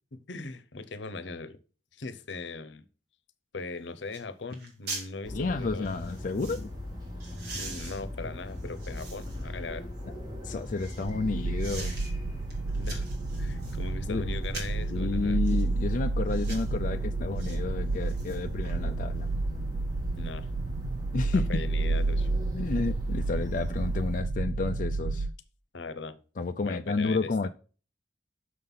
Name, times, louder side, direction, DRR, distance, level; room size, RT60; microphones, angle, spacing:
voice 1, 0.1-1.6 1.9-2.8 3.5-5.9 7.5-9.9 12.7-13.1 13.4-15.4 20.2-20.5 21.3-22.3 25.7-26.2 26.6-27.3, left 3 dB, 85° left, 0.8 m, -39 dB
sound 1, 3.6-3.7 4.1-4.3 4.5-5.1 5.8-6.6 7.2-9.5 10.0-11.1 11.6-12.1 12.5-13.8 14.4-14.8 15.4-15.7 16.3-16.7 17.4-17.6 17.9-18.8 19.1-19.2, right 3 dB, 60° right, 2.2 m, -43 dB
sound 2, 5.2-24.2, left 1 dB, 25° right, 3.1 m, -40 dB
voice 2, 5.3-6.7 10.4-11.9 14.1-14.4 14.9-19.3 21.1-21.6 22.5-25.3 26.4-27.5, left 3 dB, 45° left, 0.4 m, -31 dB
sound 3, 11.1-25.3, right 3 dB, 75° right, 0.4 m, -31 dB
6.6 x 5.5 x 5.5 m
head